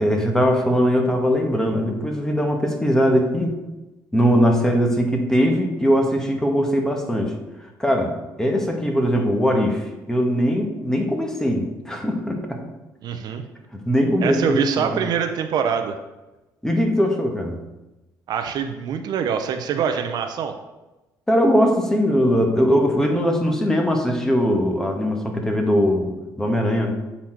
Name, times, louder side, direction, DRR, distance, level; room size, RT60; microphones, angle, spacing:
voice 1, 0.0-3.6 4.1-7.3 7.8-8.1 8.4-12.6 13.9-14.9 16.6-17.6 21.3-26.9, equal, 5° left, 2 dB, 1.3 m, -20 dB
voice 2, 13.0-13.4 14.2-16.0 18.3-20.5, right 7 dB, 65° right, 7 dB, 0.6 m, -24 dB
8.5 x 4.2 x 4.4 m, 1.1 s
cardioid pair, 105°, 8 cm